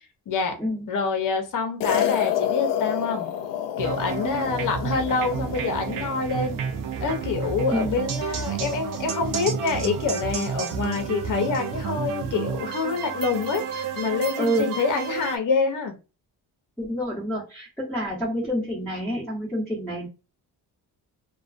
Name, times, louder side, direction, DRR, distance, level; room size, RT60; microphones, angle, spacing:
voice 1, 0.3-0.6 0.9-3.3 3.8-6.6 7.0-15.9, left 4 dB, 50° left, 0.7 m, -26 dB
sound 1, 1.8-6.3, left 10 dB, 85° left, 0.6 m, -28 dB
sound 2, 3.8-15.4, right 7 dB, 55° right, 0.5 m, -31 dB
voice 2, 16.8-20.1, equal, ahead, 1.2 m, -27 dB
2.4 x 2.2 x 2.4 m
cardioid pair, 95°, 41 cm